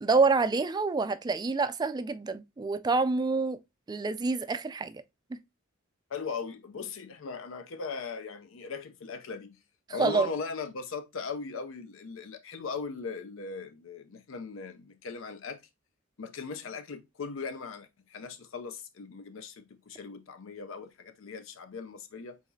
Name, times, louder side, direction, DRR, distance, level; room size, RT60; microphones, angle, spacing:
voice 1, 0.0-3.6 3.9-4.9 5.3-5.4 10.0-10.3, right 4 dB, 20° right, 0.3 m, -27 dB
voice 2, 6.1-9.6 9.9-15.6 16.2-22.4, left 4 dB, 65° left, 0.5 m, -39 dB
4.9 x 3.9 x 2.6 m
head